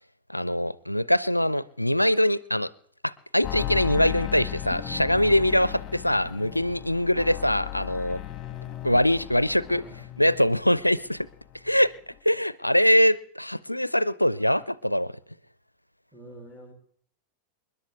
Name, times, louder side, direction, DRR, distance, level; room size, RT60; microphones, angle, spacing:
voice 1, 0.3-2.7 3.3-8.2 8.8-9.8 10.2-11.3 11.6-11.9 12.2-15.1, equal, 90° left, 20 dB, 0.5 m, -23 dB
sound 1, 3.4-10.9 11.2-11.9 12.1-12.2, left 13 dB, 25° left, 1.6 m, -36 dB
voice 2, 9.6-10.0 16.1-16.7, right 1 dB, 5° right, 3 dB, 3.0 m, -46 dB
28.0 x 11.0 x 3.5 m, 0.62 s
figure-of-eight pair, 90°, 0 cm